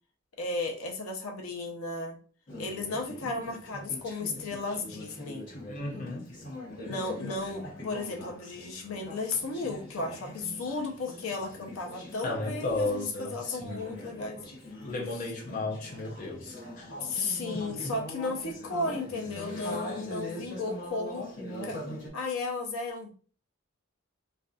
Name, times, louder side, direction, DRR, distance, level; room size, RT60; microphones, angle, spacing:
voice 1, 0.4-2.2 2.6-5.5 6.8-14.4 17.0-21.3 21.6-21.8 22.1-23.1, left 3 dB, 85° left, 0.6 m, -34 dB
Conversation / Chatter, 2.5-22.1, left 1 dB, 55° left, 0.9 m, -42 dB
voice 2, 5.7-6.3 12.2-13.9 14.8-16.9 17.5-17.8, left 2 dB, 35° left, 0.4 m, -34 dB
2.5 x 2.3 x 2.3 m
head